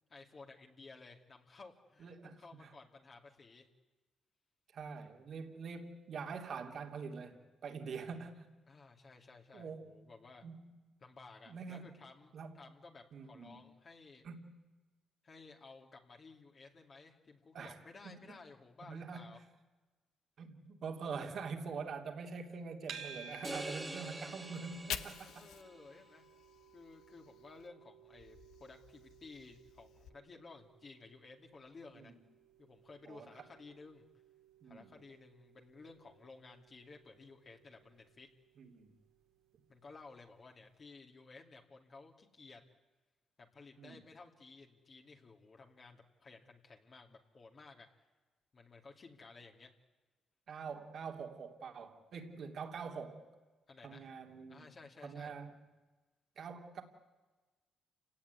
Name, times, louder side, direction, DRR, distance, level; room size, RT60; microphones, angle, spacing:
voice 1, 0.1-3.7 8.7-10.4 11.0-14.3 15.2-19.4 25.4-26.3 26.7-32.1 32.6-34.0 34.6-38.3 39.7-42.6 43.4-48.1 48.5-49.7 53.7-54.1 54.5-55.4, left 3 dB, 40° left, 2 dB, 2.6 m, -56 dB
voice 2, 2.0-2.4 4.7-8.5 9.5-10.0 10.4-10.7 11.5-12.0 12.3-12.6 13.1-13.6 14.2-14.5 17.5-17.8 18.0-18.3 18.9-19.4 20.4-25.4 32.0-32.1 33.1-33.3 34.6-34.9 38.6-38.9 43.8-44.0 50.5-53.2 53.8-54.7 55.0-55.5 56.4-56.8, right 5 dB, 60° right, 5 dB, 3.0 m, -45 dB
sound 1, 22.9-40.1, right 6 dB, 80° right, 2.6 m, -57 dB
sound 2, 23.4-25.8, right 2 dB, 15° right, 1.6 m, -45 dB
Fire, 24.5-27.7 28.0-30.1, left 10 dB, 85° left, 1.1 m, -48 dB
28.5 x 17.5 x 9.7 m, 1.3 s
cardioid pair, 90°, 0 cm